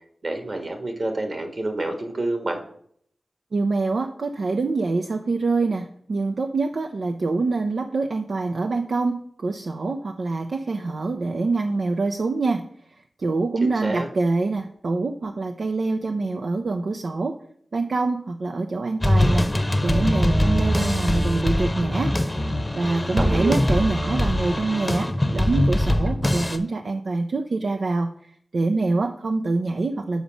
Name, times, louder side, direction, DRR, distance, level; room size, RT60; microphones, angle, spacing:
voice 1, 0.2-2.6 13.6-14.1 23.1-23.7, right 2 dB, 55° right, 5 dB, 1.6 m, -28 dB
voice 2, 3.5-12.6 13.2-17.4 17.7-19.5 19.8-22.1 22.8-28.1 28.5-30.2, right 3 dB, 70° right, 5 dB, 0.5 m, -25 dB
sound 1, 19.0-26.6, left 1 dB, 20° left, 0.9 m, -22 dB
7.1 x 4.9 x 5.2 m, 0.64 s
cardioid pair, 40°, 0 cm